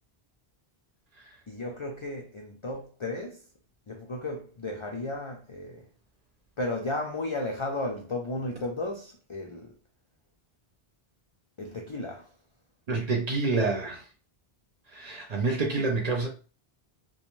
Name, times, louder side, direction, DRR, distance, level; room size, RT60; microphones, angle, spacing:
voice 1, 1.5-3.4 3.9-5.8 6.6-9.7 11.6-12.3, left 2 dB, 55° left, 0.3 m, -34 dB
voice 2, 12.9-14.0 14.9-16.3, right 3 dB, 50° right, 0.6 m, -27 dB
2.5 x 2.3 x 3.0 m
omnidirectional pair, 1.0 m